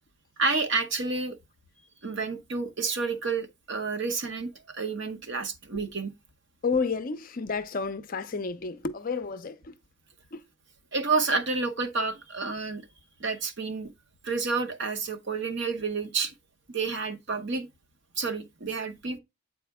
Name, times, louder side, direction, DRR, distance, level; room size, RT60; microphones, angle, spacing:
voice 1, 0.4-1.4 2.0-6.1 10.9-12.8 13.2-13.9 14.2-16.3 16.7-17.7 18.2-19.2, right 4 dB, 50° right, 0.9 m, -29 dB
voice 2, 6.6-9.8 10.3-10.4, left 4 dB, 40° left, 0.5 m, -31 dB
8.4 x 4.2 x 3.5 m
head